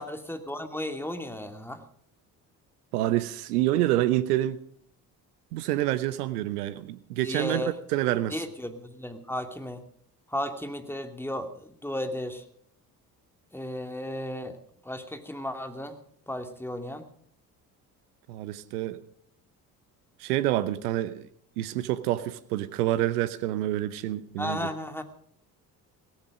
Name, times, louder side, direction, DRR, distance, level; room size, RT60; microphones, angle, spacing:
voice 1, 0.0-1.8 7.2-7.8 8.3-9.8 10.3-12.4 13.5-14.6 14.8-16.0 16.3-17.0 24.4-25.0, left 1 dB, 5° left, 6 dB, 2.6 m, -34 dB
voice 2, 2.9-4.6 5.5-8.3 18.3-19.0 20.2-21.2 21.6-24.7, right 14 dB, 75° right, 15 dB, 0.9 m, -27 dB
17.0 x 14.5 x 5.0 m, 0.64 s
figure-of-eight pair, 50°, 46 cm